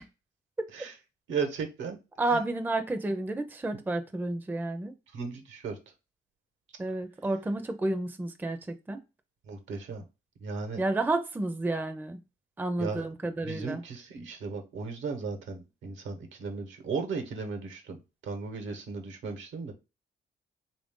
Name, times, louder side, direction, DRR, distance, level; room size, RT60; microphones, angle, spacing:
voice 1, 1.3-2.0 2.3-2.4 5.1-5.8 9.5-10.0 10.4-10.8 12.8-13.1 13.4-19.7, right 5 dB, 75° right, 6 dB, 1.0 m, -36 dB
voice 2, 2.2-4.9 6.8-9.0 10.8-12.2 12.6-13.8, right 2 dB, 10° right, 7 dB, 0.5 m, -31 dB
3.3 x 2.6 x 3.6 m, 0.27 s
cardioid pair, 90°, 20 cm